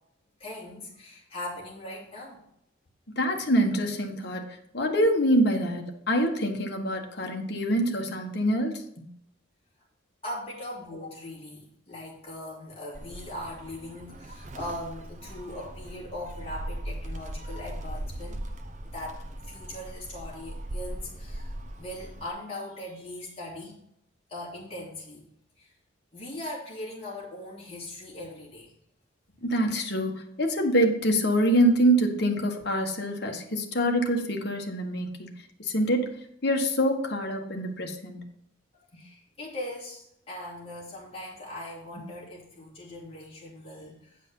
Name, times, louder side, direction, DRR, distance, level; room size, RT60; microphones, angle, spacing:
voice 1, 0.4-2.4 10.2-18.5 18.9-23.8 24.3-25.3 25.6-25.7 26.1-28.7 38.9-44.2, left 1 dB, 30° left, -5 dB, 2.9 m, -40 dB
voice 2, 3.1-4.4 4.7-9.1 29.4-35.3 35.6-36.1 36.4-38.2 38.9-39.0, equal, 55° left, 3 dB, 1.4 m, -25 dB
Gull seagull, 12.9-22.3, right 1 dB, 35° right, 0.8 m, -39 dB
9.8 x 5.2 x 5.5 m, 0.75 s
head